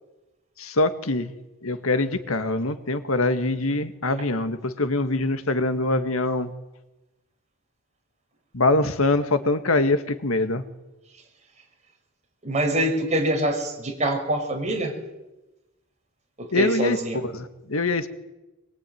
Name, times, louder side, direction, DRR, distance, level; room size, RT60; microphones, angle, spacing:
voice 1, 0.6-1.3 1.6-6.5 8.5-10.6 16.5-18.1, left 2 dB, 80° left, 10 dB, 1.8 m, -24 dB
voice 2, 12.4-14.9 16.4-17.2, right 1 dB, 35° right, 2 dB, 5.6 m, -25 dB
23.5 x 22.0 x 9.3 m, 1.0 s
head